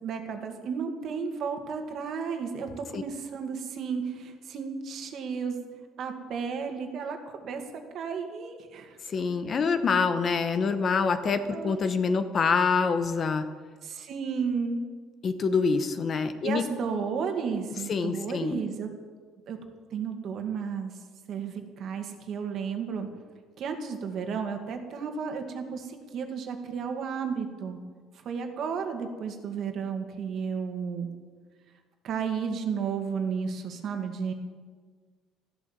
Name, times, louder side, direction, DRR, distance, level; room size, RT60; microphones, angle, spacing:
voice 1, 0.0-5.6 6.0-9.0 11.5-11.8 13.8-14.8 16.4-18.9 19.5-19.6 19.9-20.9 21.3-23.1 23.6-27.8 28.3-31.1 32.0-34.3, right 6 dB, 50° right, 5 dB, 2.0 m, -33 dB
voice 2, 9.1-13.4 15.2-16.6 17.9-18.6, left 5 dB, 35° left, 10 dB, 0.9 m, -26 dB
14.0 x 12.0 x 7.4 m, 1.5 s
cardioid pair, 145°, 0 cm